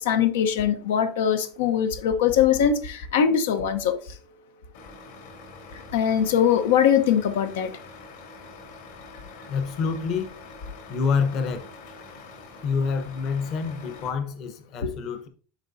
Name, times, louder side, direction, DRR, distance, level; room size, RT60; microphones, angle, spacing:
voice 1, 0.0-4.0 5.7-7.7 14.8-14.9, left 8 dB, 85° left, 1.1 m, -22 dB
Truck, 4.7-14.1, left 3 dB, 65° left, 3.6 m, -45 dB
voice 2, 9.5-10.3 10.9-11.7 12.6-15.3, left 5 dB, 40° left, 1.0 m, -27 dB
10.5 x 4.5 x 2.8 m
supercardioid pair, 155°, 0 cm